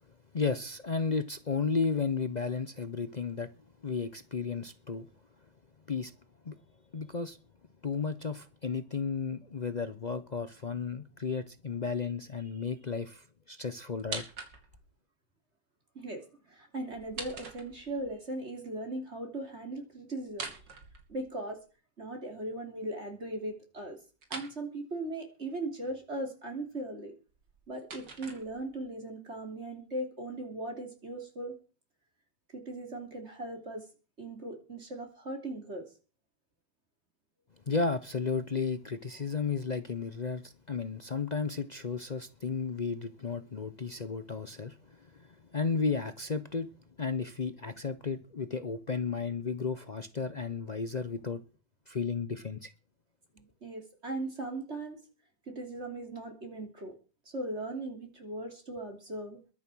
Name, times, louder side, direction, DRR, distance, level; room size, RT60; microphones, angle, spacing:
voice 1, 0.3-3.5 3.8-5.1 5.9-6.1 6.4-6.5 6.9-7.4 7.8-14.2 37.7-46.7 47.0-51.4 51.9-52.7, left 5 dB, 60° left, 0.4 m, -33 dB
sound 1, 14.0-14.9 16.9-18.1 20.3-21.6 24.2-24.6 27.3-28.9, right 4 dB, 75° right, 3.3 m, -43 dB
voice 2, 15.9-20.5 21.1-21.6 22.0-24.0 24.3-27.1 27.7-31.5 32.5-33.8 34.2-35.8 53.3-55.0 55.5-56.9 57.2-59.4, right 2 dB, 35° right, 3.3 m, -38 dB
22.0 x 7.3 x 6.2 m
omnidirectional pair, 1.9 m